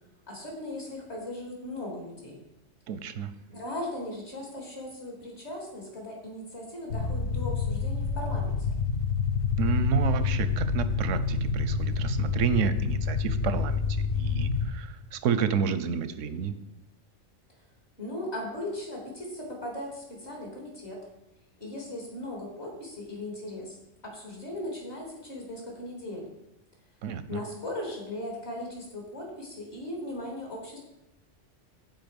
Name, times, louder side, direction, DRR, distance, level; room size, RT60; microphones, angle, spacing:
voice 1, 0.3-2.4 3.5-8.7 18.0-21.0 21.6-23.8 24.0-26.3 27.3-30.8, left 1 dB, 65° left, -1 dB, 3.6 m, -38 dB
voice 2, 2.9-3.3 9.6-16.5 27.0-27.4, right 7 dB, 85° right, 12 dB, 1.1 m, -30 dB
sound 1, 6.9-14.7, left 5 dB, 80° left, 1.4 m, -28 dB
15.0 x 5.2 x 5.3 m, 0.88 s
omnidirectional pair, 1.2 m